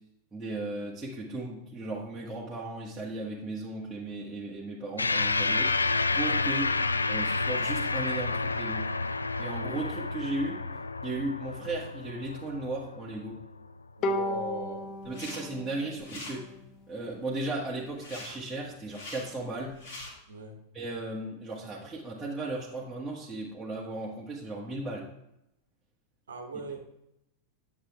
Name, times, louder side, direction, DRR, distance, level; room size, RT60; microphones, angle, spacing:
voice 1, 0.3-5.8 6.1-6.7 7.1-8.9 9.4-10.6 11.0-13.4 15.0-16.5 16.9-19.8 20.7-25.1, right 2 dB, 10° right, 1.6 m, -36 dB
sound 1, 5.0-13.7, left 3 dB, 80° left, 0.4 m, -30 dB
Bowed string instrument, 14.0-17.4, left 2 dB, 35° left, 0.7 m, -35 dB
voice 2, 14.0-15.0 20.3-20.6 26.3-26.8, right 3 dB, 70° right, 1.2 m, -39 dB
sound 2, 15.0-15.4 15.7-16.3 18.0-18.3 18.8-19.2 19.7-20.1, left 2 dB, 50° left, 2.8 m, -42 dB
9.7 x 7.1 x 3.5 m
figure-of-eight pair, 90°, 0 cm